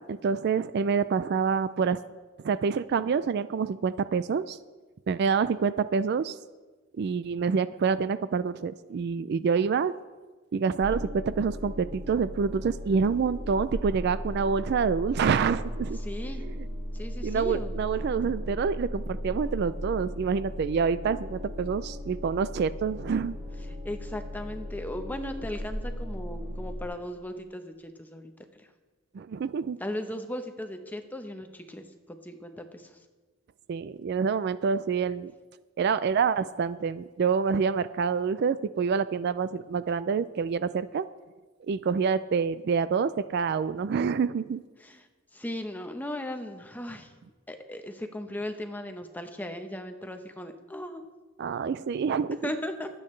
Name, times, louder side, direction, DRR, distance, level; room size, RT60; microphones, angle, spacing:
voice 1, 0.0-2.0 2.4-4.6 5.1-6.4 7.0-9.9 10.5-16.0 16.5-16.6 17.2-23.4 29.1-29.8 33.7-35.3 35.8-41.1 41.7-44.6 51.4-52.5, right 5 dB, 50° right, 14 dB, 0.3 m, -27 dB
sound 1, 10.8-26.9, left 1 dB, 20° right, 3.4 m, -36 dB
voice 2, 16.0-16.4 16.9-17.7 23.7-28.3 28.6-28.7 29.8-32.9 44.8-45.0 45.3-47.1 47.5-51.0 52.4-52.9, left 1 dB, 10° left, 6 dB, 0.8 m, -37 dB
23.5 x 8.6 x 3.2 m, 1.3 s
head